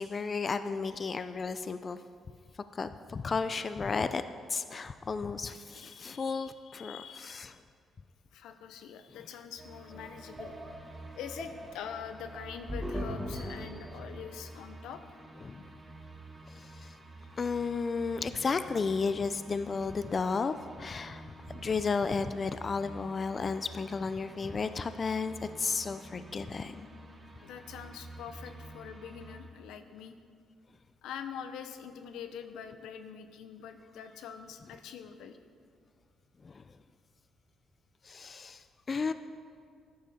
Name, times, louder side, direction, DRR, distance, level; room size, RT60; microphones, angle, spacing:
voice 1, 0.0-2.0 2.7-4.2 4.5-7.5 15.4-15.6 16.6-16.9 17.4-26.9 36.4-36.6 38.0-39.1, left 4 dB, 40° left, 11 dB, 0.4 m, -33 dB
voice 2, 5.7-7.6 8.3-10.5 10.9-15.0 27.4-30.2 31.0-35.4, left 8 dB, 85° left, 9 dB, 0.7 m, -44 dB
sound 1, 9.6-29.4, right 1 dB, 25° right, 2.1 m, -49 dB
sound 2, 9.9-14.3, equal, 5° right, 1.7 m, -40 dB
13.5 x 10.5 x 4.2 m, 2.1 s
cardioid pair, 90°, 0 cm